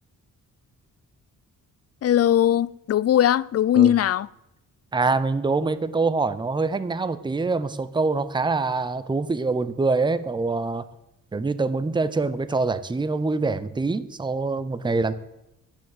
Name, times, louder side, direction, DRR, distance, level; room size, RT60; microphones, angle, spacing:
voice 1, 2.0-4.3, left 11 dB, 50° left, 0.4 m, -19 dB
voice 2, 4.9-10.8 11.3-15.1, right 3 dB, 15° right, 0.6 m, -25 dB
11.5 x 10.0 x 7.8 m
wide cardioid pair, 140°, 33 cm